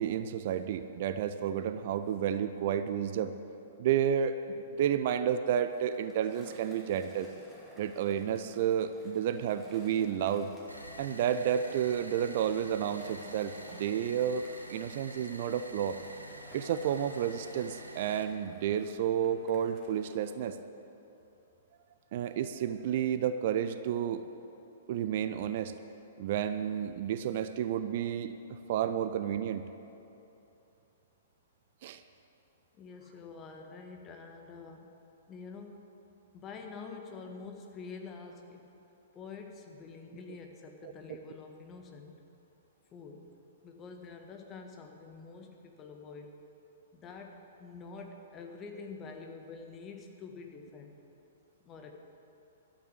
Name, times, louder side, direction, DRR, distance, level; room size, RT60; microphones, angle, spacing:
voice 1, 0.0-3.3 3.8-7.3 7.8-10.5 11.0-16.0 16.5-20.6 22.1-24.2 24.9-25.7 26.2-29.6 31.8-32.0 40.8-40.9, right 9 dB, 45° right, 11 dB, 0.5 m, -31 dB
Skateboard, 5.6-20.3, equal, 5° left, 2.6 m, -56 dB
sound 1, 10.7-18.2, right 1 dB, 85° right, 1.2 m, -48 dB
voice 2, 32.8-34.9 35.3-35.9 36.3-38.7 39.1-42.2 42.9-43.3 43.6-46.3 46.9-50.9 51.6-51.9, left 4 dB, 25° left, 3 dB, 1.5 m, -47 dB
12.5 x 8.9 x 8.2 m, 2.9 s
figure-of-eight pair, 110°, 0 cm